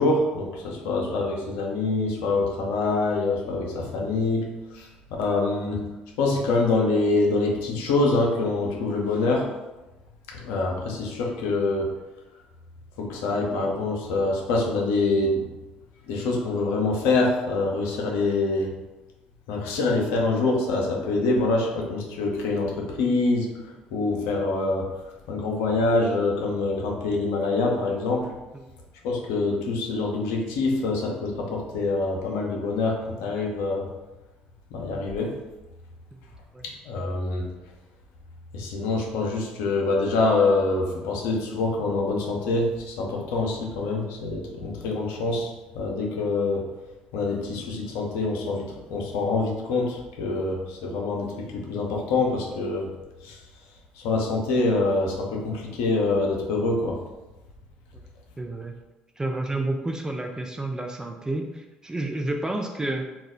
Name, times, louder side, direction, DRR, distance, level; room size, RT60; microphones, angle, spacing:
voice 1, 0.0-4.5 4.7-5.8 6.2-9.5 10.3-11.9 13.0-15.4 16.1-18.7 19.5-23.5 23.9-24.9 25.3-28.3 29.0-33.9 34.7-35.3 36.6-37.5 38.5-46.6 47.1-52.9 53.2-53.4 54.0-57.0, left 3 dB, 75° left, 0 dB, 0.6 m, -25 dB
voice 2, 58.4-58.7 59.2-63.1, right 2 dB, 15° right, 3 dB, 0.3 m, -30 dB
2.3 x 2.0 x 3.6 m, 1.1 s
hypercardioid pair, 55°, 4 cm